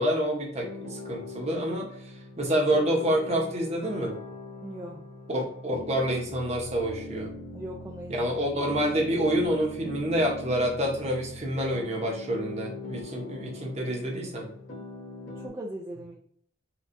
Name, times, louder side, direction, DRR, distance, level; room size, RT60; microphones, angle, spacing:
voice 1, 0.0-4.2 5.3-7.3 8.2-14.5, equal, 35° right, 0 dB, 0.8 m, -28 dB
sound 1, 0.6-15.5, left 2 dB, 70° left, 1.5 m, -42 dB
voice 2, 4.6-5.0 7.5-8.3 15.4-16.2, right 1 dB, 15° right, -2 dB, 0.3 m, -39 dB
4.3 x 2.3 x 2.5 m, 0.63 s
head